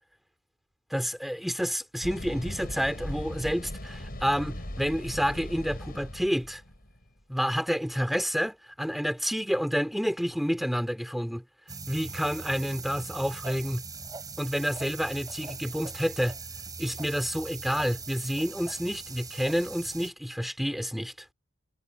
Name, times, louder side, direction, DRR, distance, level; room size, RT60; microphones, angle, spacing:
voice 1, 0.9-6.6 7.3-11.4 11.9-13.8 14.4-16.4 16.8-21.1, equal, ahead, 2.5 m, -29 dB
sound 1, 2.0-7.0, equal, 45° left, 6.2 m, -38 dB
sound 2, 11.7-20.1, right 4 dB, 20° right, 5.8 m, -41 dB
head